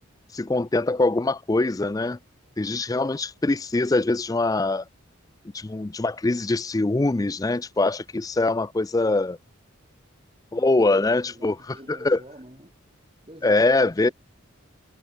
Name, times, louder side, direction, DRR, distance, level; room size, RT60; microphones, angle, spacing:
voice 1, 0.3-2.2 2.6-4.8 5.5-9.4 10.5-11.6 11.9-12.2 13.4-14.1, left 2 dB, 15° left, 0.4 m, -23 dB
voice 2, 11.2-12.7 13.2-14.1, right 1 dB, 25° right, 8.0 m, -47 dB
head